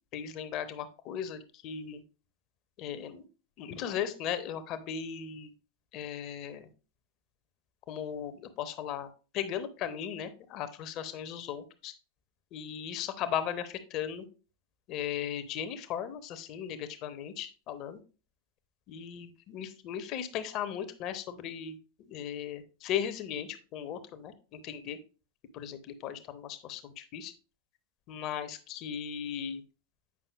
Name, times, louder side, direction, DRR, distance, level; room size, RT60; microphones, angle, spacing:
voice 1, 0.1-2.0 2.8-3.3 3.6-5.5 5.9-6.7 7.9-9.1 9.3-11.9 12.5-14.3 14.9-18.0 18.9-25.0 25.5-27.3 28.1-29.6, left 9 dB, 40° left, 11 dB, 0.7 m, -37 dB
8.3 x 5.4 x 2.4 m, 0.34 s
figure-of-eight pair, 90°, 0 cm